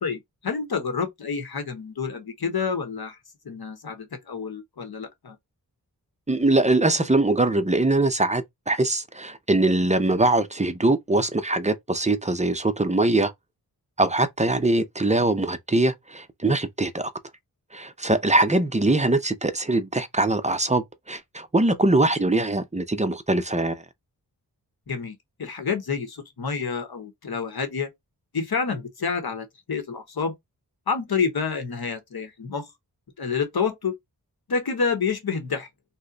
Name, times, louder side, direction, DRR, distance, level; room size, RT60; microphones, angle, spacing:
voice 1, 0.0-3.2 3.4-5.4 24.9-27.9 28.3-30.3 30.9-32.7 33.2-33.9 34.5-35.7, left 5 dB, 70° left, 1.0 m, -28 dB
voice 2, 6.3-13.3 14.0-17.1 17.7-23.8, right 2 dB, 20° right, 0.5 m, -22 dB
2.7 x 2.1 x 3.7 m
cardioid pair, 40°, 38 cm